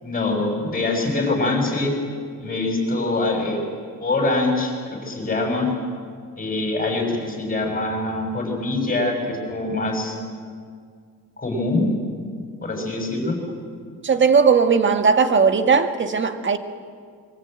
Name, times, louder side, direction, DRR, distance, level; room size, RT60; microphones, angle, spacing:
voice 1, 0.0-1.9 2.4-3.6 4.0-4.8 5.0-5.7 6.3-10.1 11.4-11.8 12.6-13.4, left 2 dB, 25° left, 2 dB, 6.6 m, -24 dB
voice 2, 14.0-16.6, right 5 dB, 35° right, 8 dB, 1.7 m, -17 dB
25.5 x 23.5 x 9.0 m, 2.1 s
cardioid pair, 140°, 34 cm